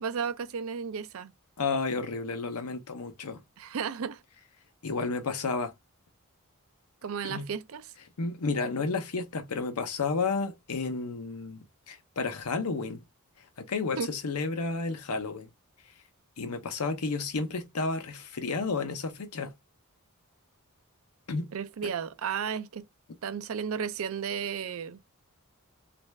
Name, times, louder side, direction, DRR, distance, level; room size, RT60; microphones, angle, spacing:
voice 1, 0.0-1.3 3.6-4.2 7.0-7.8 14.0-14.1 21.5-22.8 23.2-25.0, right 6 dB, 65° right, 0.4 m, -33 dB
voice 2, 1.6-3.4 4.8-5.7 7.2-7.5 8.2-13.0 13.6-15.5 16.4-19.5 21.3-21.5 21.8-21.9, left 4 dB, 90° left, 0.7 m, -31 dB
3.1 x 2.5 x 3.2 m
head